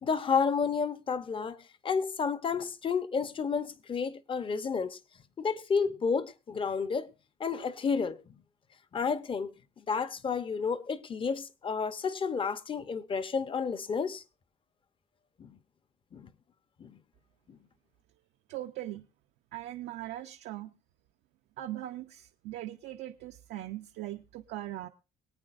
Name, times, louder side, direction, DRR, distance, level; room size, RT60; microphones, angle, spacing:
voice 1, 0.0-1.6 1.8-5.0 5.4-7.1 7.4-8.2 8.9-9.5 9.8-14.2 15.4-15.6 16.1-16.3 16.8-17.0 17.5-17.6, left 5 dB, 30° left, 0.8 m, -31 dB
voice 2, 18.5-19.1 19.5-20.7 21.6-24.9, right 14 dB, 80° right, 0.7 m, -40 dB
24.5 x 8.8 x 2.5 m
cardioid pair, 110°, 17 cm